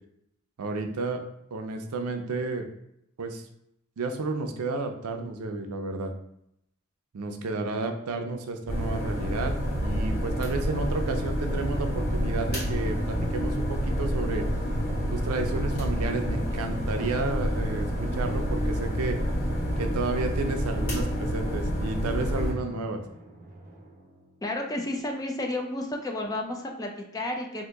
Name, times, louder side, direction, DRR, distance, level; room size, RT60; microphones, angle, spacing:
voice 1, 0.6-1.2 1.5-2.7 3.2-3.5 4.0-6.1 7.1-9.5 9.8-14.5 15.1-19.2 19.8-23.0, right 3 dB, 85° right, 5 dB, 0.5 m, -32 dB
sound 1, 8.7-22.5, equal, 70° left, 1.4 m, -28 dB
Drum, 11.7-24.8, right 2 dB, 40° right, 0.8 m, -46 dB
voice 2, 24.4-27.7, left 1 dB, 15° left, 2 dB, 0.4 m, -32 dB
2.8 x 2.6 x 3.4 m, 0.77 s
head